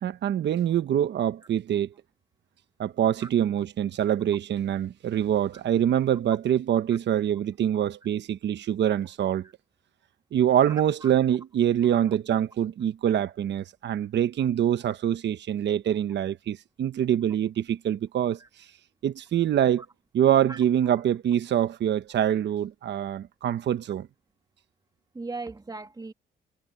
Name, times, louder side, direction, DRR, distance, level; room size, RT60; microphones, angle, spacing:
voice 1, 0.0-1.9 2.8-9.5 10.3-18.4 19.0-19.8 20.1-24.1, right 10 dB, 60° right, 1.1 m, -25 dB
voice 2, 25.1-26.1, right 3 dB, 20° right, 2.2 m, -37 dB
cardioid pair, 90°, 20 cm